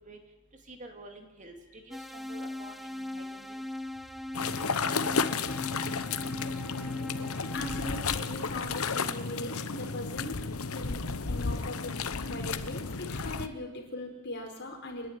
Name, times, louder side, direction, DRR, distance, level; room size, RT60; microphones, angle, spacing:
voice 1, 0.7-2.7 3.1-3.2, right 1 dB, 35° right, 4 dB, 2.8 m, -48 dB
sound 1, 1.9-8.1, left 1 dB, ahead, 0.7 m, -39 dB
sound 2, 4.3-13.5, left 5 dB, 75° left, 1.1 m, -32 dB
voice 2, 7.4-10.4 10.7-15.1, left 1 dB, 55° left, 2 dB, 4.9 m, -40 dB
29.5 x 11.0 x 9.2 m, 1.1 s
head